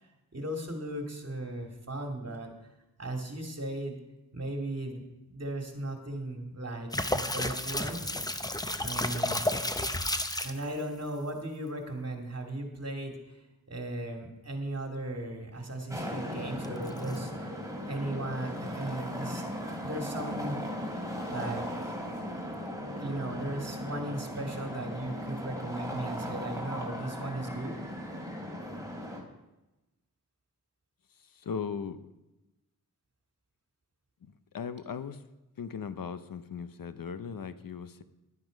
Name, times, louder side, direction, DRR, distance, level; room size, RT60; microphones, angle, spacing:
voice 1, 0.3-2.5 3.0-4.0 4.3-5.0 5.3-8.2 8.8-9.4 10.4-13.3 13.7-17.5 17.8-19.4 19.8-20.6 21.3-22.0 23.0-27.7, right 1 dB, 45° right, 2 dB, 2.4 m, -37 dB
sound 1, 6.9-10.6 16.6-17.2, left 1 dB, 10° left, 0.9 m, -31 dB
sound 2, 15.9-29.2, equal, 10° right, 3.2 m, -37 dB
voice 2, 31.2-32.1 34.2-35.2 35.6-38.0, left 6 dB, 70° left, 12 dB, 0.8 m, -38 dB
11.5 x 9.5 x 5.1 m, 1.0 s
cardioid pair, 55°, 35 cm